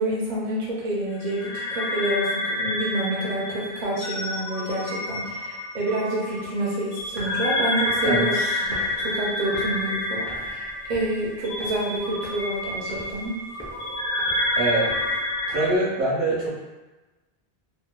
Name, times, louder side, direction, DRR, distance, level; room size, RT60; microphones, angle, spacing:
voice 1, 0.0-8.3 8.7-13.4, right 1 dB, 50° right, -5 dB, 0.6 m, -28 dB
sound 1, 1.2-15.7, left 1 dB, 65° left, 0.7 m, -29 dB
sound 2, 7.0-15.8, equal, 20° left, 0.4 m, -44 dB
voice 2, 8.0-8.7 14.6-14.9 15.5-16.5, right 2 dB, 70° right, -7 dB, 1.0 m, -24 dB
2.8 x 2.1 x 2.2 m, 1.1 s
omnidirectional pair, 1.1 m